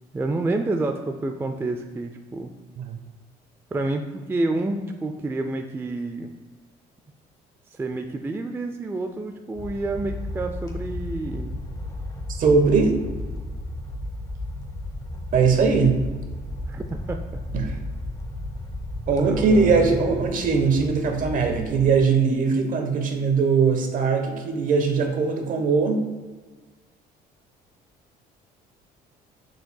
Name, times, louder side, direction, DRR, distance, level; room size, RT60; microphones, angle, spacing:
voice 1, 0.1-2.5 3.7-6.3 7.7-11.6 13.3-13.4 16.7-17.4 19.2-20.1, right 2 dB, 15° right, 5 dB, 0.4 m, -29 dB
sound 1, 9.5-22.0, left 1 dB, 20° left, 1.0 m, -33 dB
voice 2, 12.4-13.0 15.3-16.0 17.5-17.8 19.1-26.0, right 5 dB, 55° right, 4 dB, 1.1 m, -20 dB
6.9 x 6.4 x 2.3 m, 1.3 s
cardioid pair, 110°, 17 cm